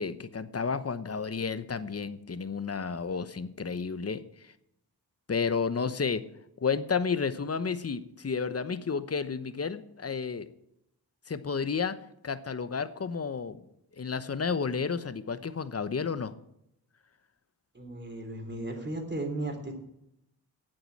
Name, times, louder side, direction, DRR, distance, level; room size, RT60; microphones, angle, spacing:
voice 1, 0.0-4.5 5.3-6.2 6.6-10.5 11.3-12.0 12.2-13.6 14.0-16.3, left 5 dB, 35° left, 12 dB, 1.0 m, -31 dB
voice 2, 17.7-19.8, right 2 dB, 25° right, 4 dB, 3.5 m, -35 dB
8.9 x 7.8 x 8.5 m, 0.80 s
cardioid pair, 50°, 42 cm